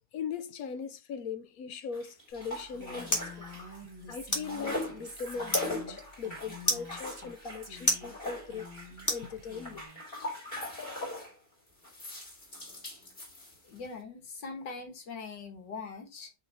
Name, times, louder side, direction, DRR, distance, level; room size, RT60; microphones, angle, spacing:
voice 1, 0.1-3.5 4.1-8.7 9.1-9.8, left 6 dB, 60° left, 1.1 m, -39 dB
sound 1, 1.9-3.9 4.1-11.4 11.8-13.9, left 2 dB, 30° left, 3.2 m, -40 dB
sound 2, 2.3-9.9, equal, 10° left, 1.7 m, -36 dB
Female speech woman speaking, 2.7-7.3 7.6-8.2 8.4-9.1 9.4-10.0, left 1 dB, 20° right, 0.6 m, -48 dB
voice 2, 13.6-16.3, left 4 dB, 80° left, 2.1 m, -42 dB
6.0 x 3.9 x 4.2 m
omnidirectional pair, 1.9 m